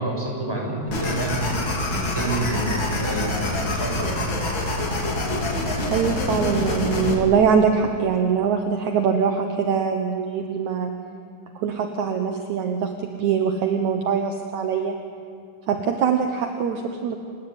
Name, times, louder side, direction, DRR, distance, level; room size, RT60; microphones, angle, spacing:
voice 1, 0.0-1.5 1.9-4.2, right 2 dB, 5° right, -1 dB, 6.2 m, -29 dB
sound 1, 0.9-7.2, left 2 dB, 35° left, 3.3 m, -25 dB
voice 2, 5.9-10.9 11.6-15.0 15.7-17.2, right 6 dB, 65° right, 4 dB, 2.4 m, -23 dB
29.5 x 17.5 x 9.1 m, 2.4 s
omnidirectional pair, 3.9 m